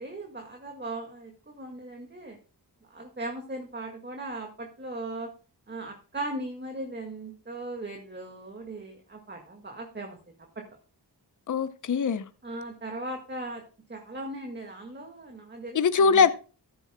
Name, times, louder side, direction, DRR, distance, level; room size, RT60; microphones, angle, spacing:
voice 1, 0.0-2.4 2.9-5.3 5.7-10.2 12.4-13.6 13.9-16.2, right 2 dB, 25° right, 1.9 m, -38 dB
voice 2, 11.5-12.2 15.7-16.3, left 5 dB, 50° left, 0.7 m, -22 dB
14.0 x 10.5 x 2.2 m
wide cardioid pair, 75°, 40 cm